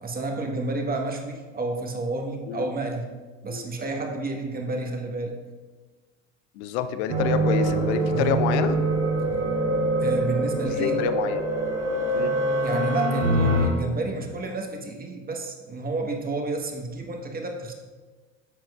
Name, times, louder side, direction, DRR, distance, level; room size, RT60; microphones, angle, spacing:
voice 1, 0.0-3.1 3.4-5.4 8.1-8.4 10.0-11.0 12.6-17.7, right 2 dB, 25° right, 3 dB, 1.4 m, -30 dB
voice 2, 6.5-8.8 10.6-11.4 12.1-12.3, left 9 dB, 65° left, 11 dB, 0.7 m, -28 dB
sound 1, 7.1-13.7, right 1 dB, 85° right, 1.3 m, -24 dB
10.5 x 7.5 x 2.5 m, 1.3 s
figure-of-eight pair, 65°, 36 cm